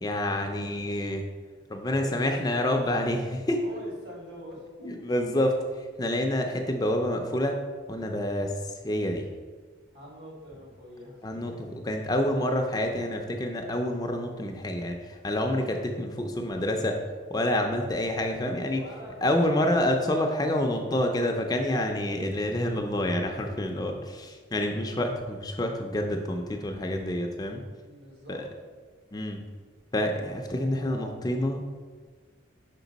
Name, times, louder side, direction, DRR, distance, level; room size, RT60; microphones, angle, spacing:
voice 1, 0.0-1.2 1.7-3.6 4.8-7.6 7.9-9.3 11.2-17.0 17.3-18.8 19.2-27.6 28.3-28.4 29.1-29.4 29.9-31.8, left 1 dB, 20° left, 3 dB, 0.4 m, -28 dB
voice 2, 1.9-2.9 3.6-5.2 9.9-11.8 18.7-19.9 27.8-28.4 30.4-31.3, equal, 65° right, -3 dB, 1.7 m, -44 dB
5.9 x 4.4 x 4.0 m, 1.5 s
head